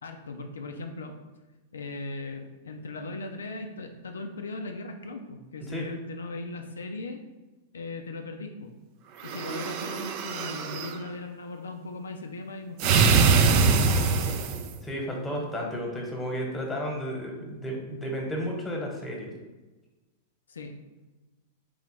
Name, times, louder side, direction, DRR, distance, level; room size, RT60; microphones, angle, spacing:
voice 1, 0.0-1.2 1.7-7.2 7.7-8.7 9.2-13.9 20.5-20.7, left 2 dB, 90° left, 5 dB, 0.4 m, -38 dB
sound 1, 9.2-11.0 12.8-14.7, right 4 dB, 50° right, 0.4 m, -23 dB
voice 2, 14.8-19.3, equal, 10° left, 0 dB, 1.1 m, -33 dB
3.8 x 3.3 x 3.1 m, 1.2 s
hypercardioid pair, 110°, 0 cm